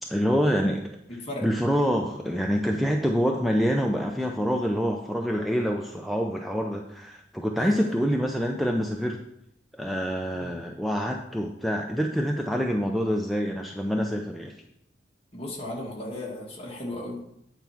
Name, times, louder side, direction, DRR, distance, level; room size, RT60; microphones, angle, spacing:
voice 1, 0.0-0.8 1.4-9.2 9.8-14.5, equal, ahead, 1 dB, 0.5 m, -26 dB
voice 2, 7.6-7.9 10.3-10.5 15.3-17.2, left 1 dB, 35° left, -2 dB, 1.9 m, -36 dB
9.2 x 4.6 x 5.8 m, 0.78 s
head